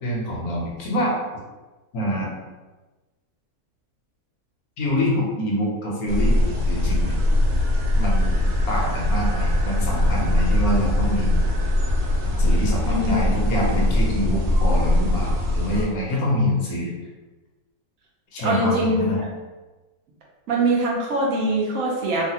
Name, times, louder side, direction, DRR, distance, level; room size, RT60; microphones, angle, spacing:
voice 1, 0.0-1.2 1.9-2.3 4.8-7.2 8.0-8.3 8.7-11.4 12.2-16.9 18.3-19.2, equal, 75° left, -3 dB, 1.2 m, -26 dB
sound 1, 6.1-15.9, left 1 dB, 90° right, 1.2 m, -21 dB
voice 2, 12.9-13.2 13.7-13.8 18.4-19.3 20.5-22.3, right 1 dB, 70° right, -3 dB, 1.0 m, -23 dB
3.1 x 2.2 x 2.8 m, 1.2 s
omnidirectional pair, 1.6 m